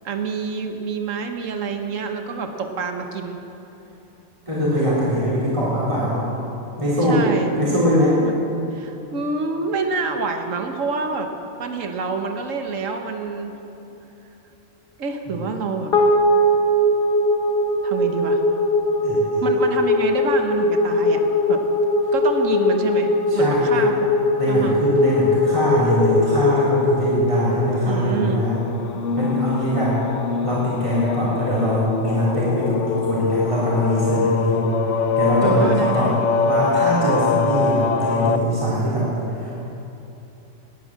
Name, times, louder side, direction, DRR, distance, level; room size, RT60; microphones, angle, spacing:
voice 1, 0.0-3.4 7.0-7.5 8.2-8.3 8.7-11.3 11.6-13.6 15.0-15.9 17.8-18.4 19.4-21.7 22.1-24.1 24.5-24.8 27.8-28.5 35.4-36.2, right 4 dB, 75° right, 5 dB, 1.5 m, -27 dB
voice 2, 4.5-6.3 6.8-7.2 7.5-8.2 19.0-19.4 23.3-23.9 24.4-28.5 29.2-30.0 30.4-34.7 35.2-36.1 36.5-39.6, equal, 25° right, -8 dB, 3.6 m, -22 dB
sound 1, 15.9-28.4, left 1 dB, 45° left, 1.8 m, -20 dB
sound 2, 28.1-38.4, left 5 dB, 70° left, 1.0 m, -24 dB
20.0 x 9.4 x 7.5 m, 3.0 s
omnidirectional pair, 1.4 m